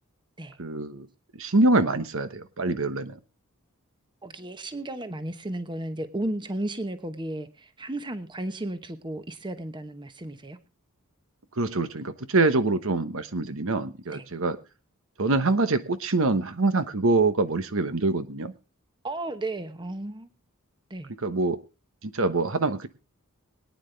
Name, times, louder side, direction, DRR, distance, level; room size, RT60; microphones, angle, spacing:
voice 1, 0.6-1.1 1.4-3.2 11.6-14.6 15.2-18.5 21.2-21.6 22.0-22.9, right 2 dB, 65° right, 11 dB, 1.1 m, -25 dB
voice 2, 4.2-10.6 14.1-14.2 19.0-20.3 20.9-21.1, right 1 dB, 20° right, 10 dB, 1.1 m, -34 dB
22.0 x 9.7 x 3.3 m, 0.29 s
head